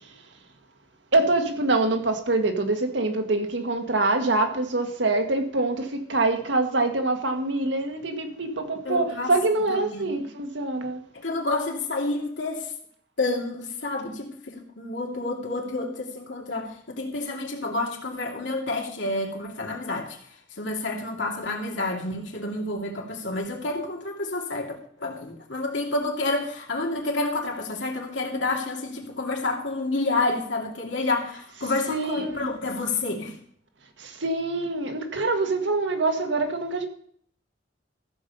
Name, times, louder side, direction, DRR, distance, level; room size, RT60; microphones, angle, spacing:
voice 1, 1.1-11.0 31.9-32.5 34.0-36.9, right 2 dB, 80° right, 1.6 m, -25 dB
voice 2, 8.8-9.3 9.7-10.1 11.1-12.7 13.2-20.2 20.6-33.4, left 2 dB, 85° left, 2.5 m, -29 dB
14.5 x 5.3 x 6.8 m
head